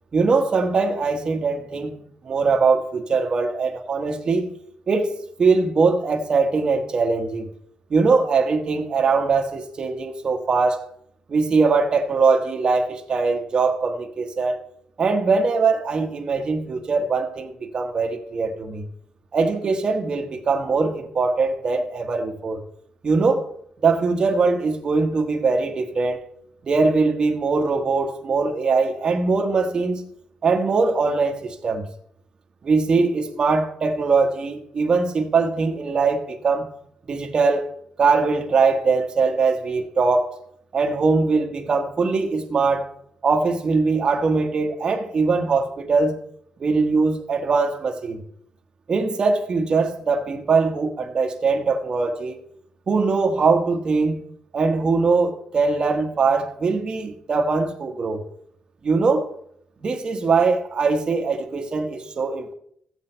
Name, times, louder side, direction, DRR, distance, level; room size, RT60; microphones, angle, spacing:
voice 1, 0.1-1.9 2.2-4.5 4.9-7.5 7.9-10.8 11.3-14.6 15.0-18.9 19.3-22.6 23.0-23.5 23.8-26.2 26.7-30.0 30.4-31.9 32.6-36.7 37.1-37.6 38.0-40.4 40.7-42.9 43.2-46.2 46.6-48.2 48.9-52.4 52.9-54.2 54.5-58.2 58.8-59.3 59.8-62.5, right 4 dB, 40° right, 1.2 m, -21 dB
14.0 x 7.8 x 4.4 m
cardioid pair, 125°, 2 cm